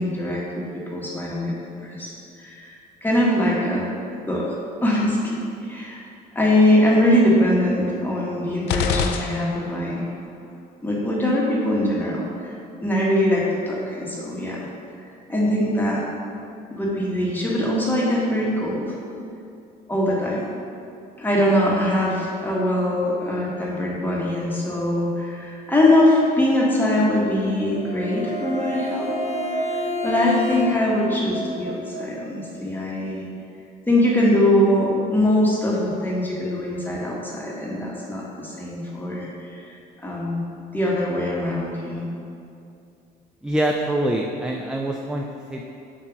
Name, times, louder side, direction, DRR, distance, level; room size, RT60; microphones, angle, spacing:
voice 1, 0.0-1.5 1.8-2.7 3.0-3.9 4.3-4.5 4.8-5.4 5.7-6.0 6.3-10.0 10.8-12.5 12.8-14.6 15.3-16.0 16.7-18.9 19.9-20.4 21.2-29.2 30.0-33.2 33.9-39.7 40.0-40.4 40.7-42.1, left 1 dB, 10° left, -4 dB, 1.4 m, -22 dB
sound 1, 8.7-10.0, left 6 dB, 80° left, 0.4 m, -26 dB
sound 2, 27.3-33.1, right 4 dB, 40° right, 0.7 m, -33 dB
Bowed string instrument, 27.7-31.1, left 5 dB, 40° left, 1.0 m, -31 dB
voice 2, 43.4-45.6, right 1 dB, 5° right, 1 dB, 0.4 m, -25 dB
7.4 x 2.8 x 6.0 m, 2.6 s
cardioid pair, 110°, 17 cm